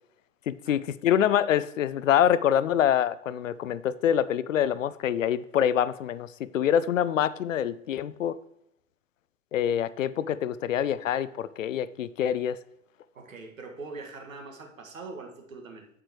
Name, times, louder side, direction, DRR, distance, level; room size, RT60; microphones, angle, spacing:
voice 1, 0.5-8.3 9.5-12.6, left 10 dB, 70° left, 0.6 m, -25 dB
voice 2, 13.1-15.9, right 3 dB, 75° right, 1.9 m, -42 dB
8.9 x 8.2 x 3.0 m
figure-of-eight pair, 100°, 40 cm